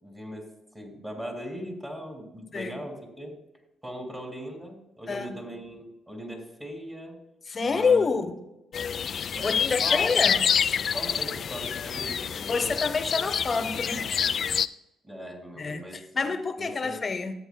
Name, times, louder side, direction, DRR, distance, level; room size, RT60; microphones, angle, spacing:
voice 1, 0.0-3.4 3.8-7.2 7.6-8.2 9.3-10.1 10.9-12.8 13.1-13.2 15.0-17.0, equal, 15° right, 2.8 m, -40 dB
voice 2, 5.1-5.4 7.5-8.3 9.4-10.4 12.5-14.1 15.6-17.3, left 4 dB, 35° left, 0.9 m, -27 dB
sound 1, 8.7-14.7, left 7 dB, 55° left, 0.3 m, -27 dB
14.0 x 8.1 x 2.2 m
cardioid pair, 90°, 0 cm